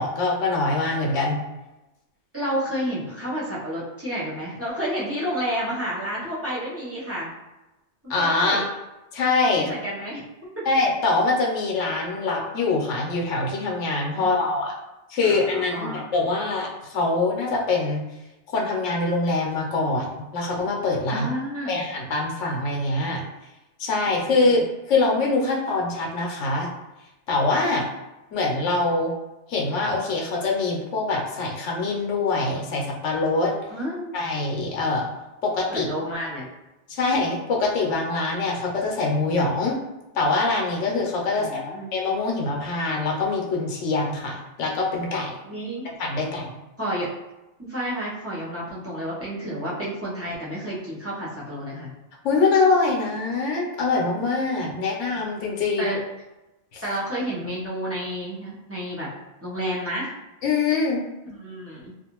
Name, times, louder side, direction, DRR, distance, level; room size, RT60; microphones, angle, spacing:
voice 1, 0.0-1.4 8.1-8.6 9.1-9.7 10.7-14.7 15.1-18.0 18.5-21.3 21.7-23.2 23.8-26.7 27.3-27.8 28.3-29.1 29.5-33.5 34.1-35.1 35.4-35.9 36.9-39.8 40.1-45.3 46.0-46.6 52.2-56.0 56.7-56.8 60.4-61.0, left 3 dB, 90° left, -1 dB, 1.0 m, -24 dB
voice 2, 2.3-7.3 8.0-8.7 9.6-10.2 10.6-10.7 14.1-14.6 15.2-16.1 21.1-21.8 24.1-24.7 33.7-34.2 35.7-36.5 41.3-41.9 45.4-45.9 46.8-47.1 47.6-51.9 54.7-54.8 55.1-55.2 55.8-56.0 56.8-59.1 59.4-60.1 61.2-61.9, equal, 15° right, -8 dB, 0.6 m, -30 dB
2.5 x 2.5 x 2.9 m, 0.99 s
omnidirectional pair, 1.2 m